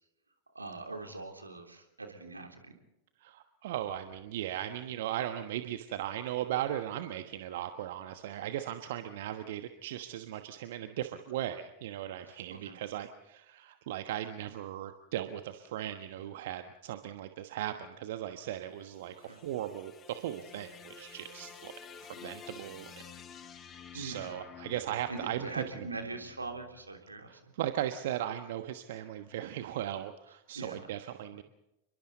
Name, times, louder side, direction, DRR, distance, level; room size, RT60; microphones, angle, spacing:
voice 1, 0.6-2.7 12.7-12.8 19.3-19.4 23.9-24.4 25.1-27.3 30.6-30.9, right 3 dB, 80° right, 4 dB, 3.5 m, -42 dB
voice 2, 3.2-22.9 23.4-25.9 27.3-31.4, right 12 dB, 55° right, 8 dB, 1.2 m, -38 dB
sound 1, 18.7-27.0, left 6 dB, 25° left, 2.2 m, -51 dB
29.5 x 23.0 x 4.1 m, 0.91 s
figure-of-eight pair, 90°, 0 cm